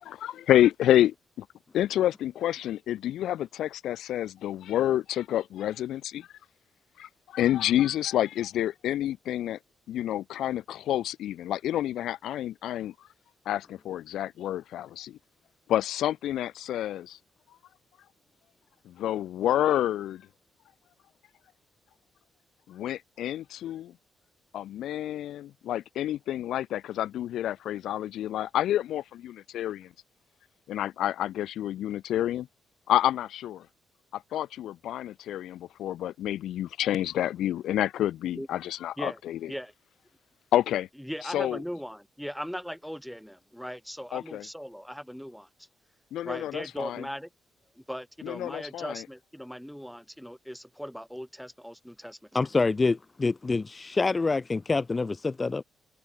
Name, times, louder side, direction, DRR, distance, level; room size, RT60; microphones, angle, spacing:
voice 1, 0.0-1.4 1.7-6.3 7.0-9.6 9.9-12.9 13.4-15.2 15.7-17.2 18.8-20.3 22.7-23.9 24.5-29.9 30.7-32.5 32.9-33.6 34.1-39.5 40.5-40.9 41.2-41.6 44.1-44.4 46.1-47.1 48.2-49.0, left 12 dB, 80° left, 1.4 m, -28 dB
voice 2, 41.0-45.5 46.2-47.3 47.8-52.2, equal, ahead, 3.7 m, -39 dB
voice 3, 52.3-55.6, left 3 dB, 25° left, 1.8 m, -26 dB
cardioid pair, 90°, 0 cm